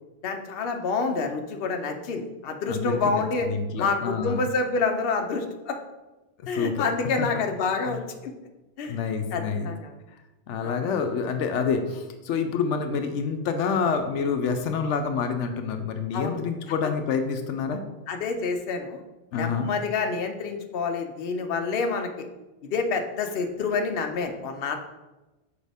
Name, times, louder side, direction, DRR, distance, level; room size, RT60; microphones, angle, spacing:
voice 1, 0.2-3.5 3.8-5.8 6.5-8.3 8.8-9.0 9.3-9.9 10.6-10.8 16.1-16.4 18.1-19.0 19.3-22.3 22.7-24.8, left 4 dB, 60° left, 5 dB, 0.9 m, -28 dB
voice 2, 2.7-4.4 6.5-6.8 7.2-7.3 7.9-8.0 8.9-9.7 10.5-17.8 19.3-19.7, left 5 dB, 85° left, 6 dB, 0.9 m, -27 dB
6.4 x 4.8 x 3.5 m, 1.1 s
omnidirectional pair, 1.2 m